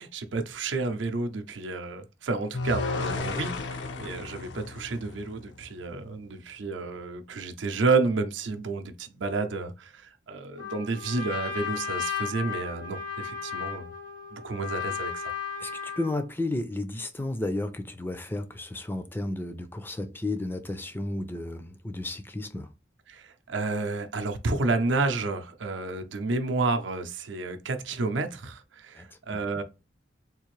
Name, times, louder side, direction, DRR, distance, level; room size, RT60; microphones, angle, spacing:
voice 1, 0.0-13.9 14.3-15.3 23.1-29.6, right 3 dB, 80° right, 0.6 m, -30 dB
sound 1, 2.5-5.7, left 3 dB, 75° left, 0.5 m, -33 dB
Trumpet, 10.6-16.2, left 6 dB, 90° left, 1.8 m, -35 dB
voice 2, 16.0-22.7 29.0-29.1, left 2 dB, 10° left, 0.4 m, -32 dB
3.6 x 2.5 x 3.1 m
head